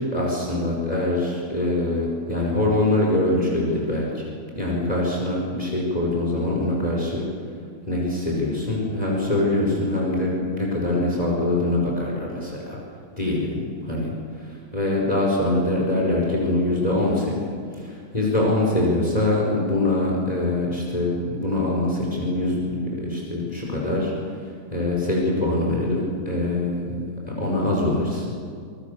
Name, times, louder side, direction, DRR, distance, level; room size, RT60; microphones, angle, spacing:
voice 1, 0.0-7.3 7.9-12.8 13.1-13.6 13.9-28.3, left 2 dB, 25° left, -2 dB, 5.4 m, -24 dB
26.0 x 24.0 x 6.9 m, 2.2 s
omnidirectional pair, 1.7 m